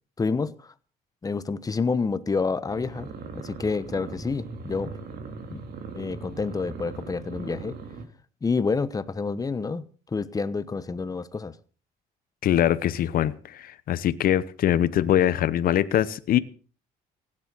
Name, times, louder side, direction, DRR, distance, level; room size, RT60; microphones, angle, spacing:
voice 1, 0.2-0.7 1.2-3.1 3.3-5.0 5.5-5.6 5.9-7.8 8.4-11.5, left 4 dB, 20° left, 1.1 m, -28 dB
sound 1, 2.7-8.0, right 4 dB, 65° right, 3.0 m, -39 dB
voice 2, 12.4-16.4, left 11 dB, 60° left, 1.0 m, -23 dB
16.5 x 10.5 x 6.3 m
cardioid pair, 110°, 17 cm